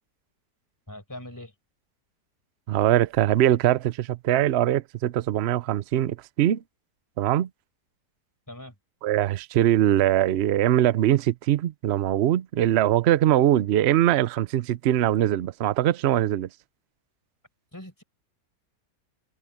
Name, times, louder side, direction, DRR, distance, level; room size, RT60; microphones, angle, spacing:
voice 1, 0.9-1.5 8.5-8.7 17.7-18.0, left 1 dB, 10° left, 5.0 m, -41 dB
voice 2, 2.7-6.6 7.2-7.5 9.0-16.5, right 12 dB, 65° right, 0.6 m, -22 dB
omnidirectional pair, 1.8 m